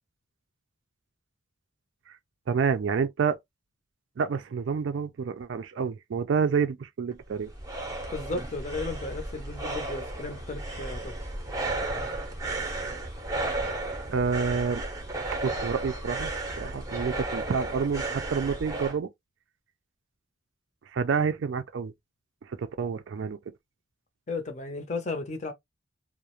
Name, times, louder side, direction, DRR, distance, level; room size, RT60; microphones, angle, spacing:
voice 1, 2.5-3.4 4.2-7.5 14.1-14.8 15.3-16.3 16.6-19.1 20.9-21.9 22.4-23.4, right 6 dB, 65° right, 0.4 m, -28 dB
sound 1, 7.1-19.0, right 2 dB, 15° right, 0.6 m, -34 dB
voice 2, 8.1-11.1 24.3-25.5, left 3 dB, 35° left, 0.6 m, -34 dB
2.4 x 2.0 x 2.9 m
head